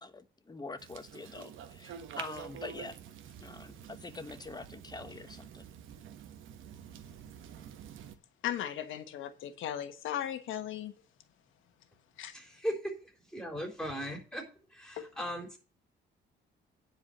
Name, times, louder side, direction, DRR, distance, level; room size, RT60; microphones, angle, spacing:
voice 1, 0.0-3.0 3.4-5.7, left 3 dB, 20° left, 1.1 m, -45 dB
sound 1, 0.8-8.2, right 8 dB, 80° right, 1.2 m, -48 dB
voice 2, 8.4-10.9 12.2-12.3 15.0-15.1, left 11 dB, 80° left, 1.3 m, -37 dB
voice 3, 12.3-12.9 13.3-14.4 14.7-15.6, equal, 5° left, 3.6 m, -37 dB
9.8 x 4.9 x 7.9 m
cardioid pair, 90°, 20 cm